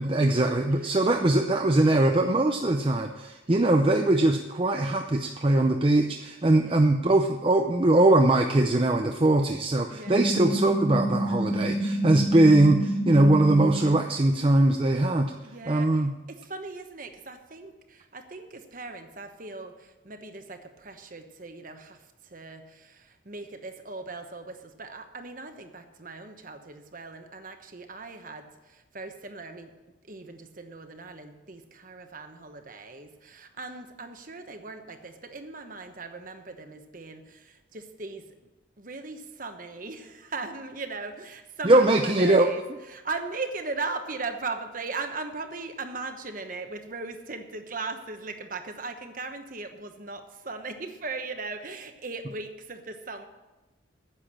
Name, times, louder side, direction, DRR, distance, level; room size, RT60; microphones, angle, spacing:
voice 1, 0.0-15.3 15.7-16.1 41.6-42.5, right 2 dB, 25° right, 4 dB, 0.5 m, -21 dB
voice 2, 0.7-1.0 6.6-6.8 9.9-10.2 15.4-29.7 30.0-38.2 38.8-53.2, right 3 dB, 45° right, 7 dB, 1.1 m, -38 dB
sound 1, 10.1-14.0, right 1 dB, 50° left, 2.4 m, -28 dB
9.9 x 8.1 x 8.8 m, 1.1 s
head